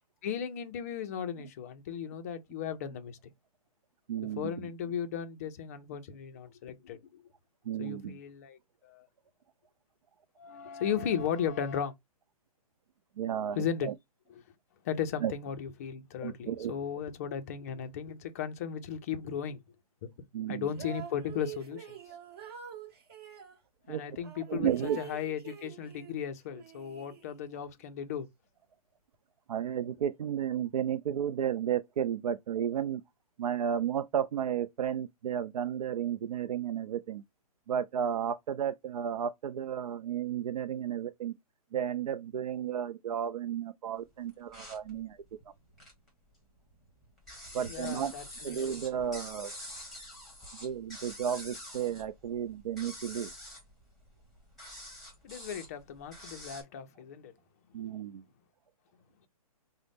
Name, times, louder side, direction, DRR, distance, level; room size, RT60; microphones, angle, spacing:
voice 1, 0.2-3.2 4.4-7.2 7.8-9.1 10.4-11.9 13.5-13.9 14.8-19.6 20.5-22.0 23.9-28.3 47.7-48.6 55.2-57.3, left 8 dB, 25° left, 0.4 m, -36 dB
voice 2, 4.1-4.7 7.7-8.2 13.2-13.9 15.2-15.3 16.2-16.7 20.3-20.7 23.9-24.0 24.5-25.0 29.5-33.0 33.4-37.2 37.7-41.3 41.7-45.2 47.5-48.1 48.4-49.6 50.6-53.3 57.7-58.2, right 9 dB, 80° right, 0.4 m, -33 dB
sound 1, 20.7-23.6 24.2-26.2 26.5-27.6, right 8 dB, 40° right, 1.2 m, -46 dB
sound 2, 44.3-46.1 46.4-56.6, left 1 dB, ahead, 1.2 m, -47 dB
5.0 x 2.0 x 3.3 m
hypercardioid pair, 160°, 19 cm